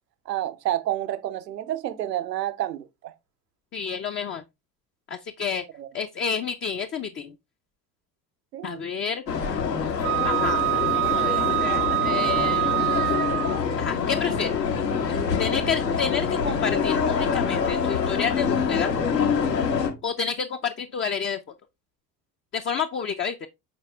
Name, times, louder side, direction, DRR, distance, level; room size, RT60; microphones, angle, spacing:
voice 1, 0.3-3.1 5.8-5.9 8.5-8.8 15.3-15.4, right 13 dB, 75° right, 0.8 m, -29 dB
voice 2, 3.7-4.4 5.1-5.6 5.9-7.3 8.6-9.2 10.2-10.6 10.9-13.1 13.8-14.6 15.1-18.9 20.0-21.4 22.5-23.5, left 6 dB, 25° left, 0.6 m, -29 dB
sound 1, 9.3-19.9, left 6 dB, 75° left, 1.5 m, -25 dB
Wind instrument woodwind instrument, 10.0-13.6, right 21 dB, 35° right, 0.4 m, -25 dB
7.5 x 4.8 x 3.3 m
figure-of-eight pair, 60°, 49 cm